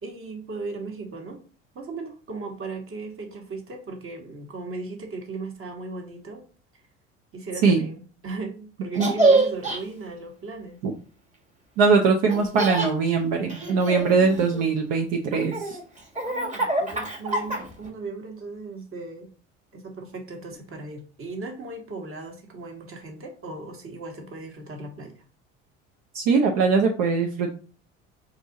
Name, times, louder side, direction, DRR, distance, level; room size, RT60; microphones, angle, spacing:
voice 1, 0.0-1.4 1.7-6.4 7.3-10.8 16.2-19.3 19.7-25.2, right 3 dB, 35° right, 3 dB, 1.5 m, -37 dB
Laughter, 8.9-9.8 12.3-12.9 13.5-14.7 15.3-17.9, right 2 dB, 20° right, 1.4 m, -25 dB
voice 2, 11.8-15.8 26.1-27.5, right 4 dB, 60° right, 2 dB, 0.8 m, -21 dB
4.6 x 2.8 x 3.9 m, 0.39 s
figure-of-eight pair, 65°, 36 cm